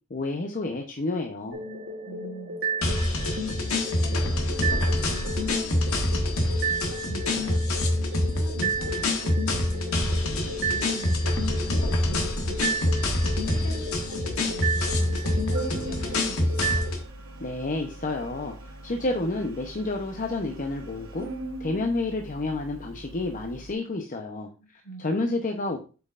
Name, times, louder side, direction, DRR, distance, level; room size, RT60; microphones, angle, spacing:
voice 1, 0.1-1.6 17.4-21.3 21.6-24.5 25.0-25.8, left 2 dB, 40° left, 3 dB, 0.8 m, -30 dB
sound 1, 1.5-16.9, right 2 dB, 50° right, 1.2 m, -33 dB
voice 2, 2.0-13.0 13.4-16.9 24.6-25.0, right 1 dB, 70° left, -1 dB, 3.1 m, -44 dB
sound 2, 2.8-17.0, left 1 dB, 85° left, 1.5 m, -26 dB
Organ, 14.7-23.7, right 2 dB, 80° right, 1.0 m, -40 dB
7.8 x 5.4 x 2.5 m, 0.33 s
head